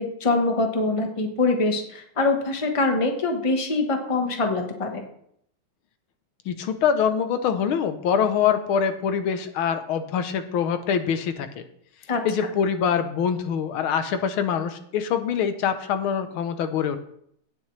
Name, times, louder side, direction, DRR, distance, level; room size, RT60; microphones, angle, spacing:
voice 1, 0.0-5.0 12.1-12.2, left 3 dB, 20° left, 4 dB, 0.9 m, -24 dB
voice 2, 6.5-11.6 12.2-17.0, left 7 dB, 80° left, 9 dB, 1.7 m, -24 dB
17.0 x 6.9 x 3.2 m, 0.69 s
omnidirectional pair, 2.3 m